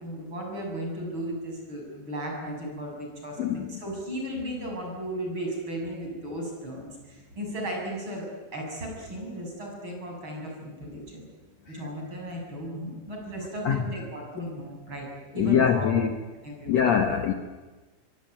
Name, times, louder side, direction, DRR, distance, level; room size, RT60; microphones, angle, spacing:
voice 1, 0.0-8.3 8.5-11.2 11.7-15.1 15.3-15.9 16.4-16.9, right 1 dB, 25° right, 0 dB, 7.6 m, -35 dB
voice 2, 3.4-3.8 11.7-11.8 13.6-13.8 15.4-16.1 16.7-17.3, left 8 dB, 80° left, 6 dB, 1.5 m, -23 dB
24.0 x 23.5 x 9.3 m, 1.2 s
omnidirectional pair, 5.1 m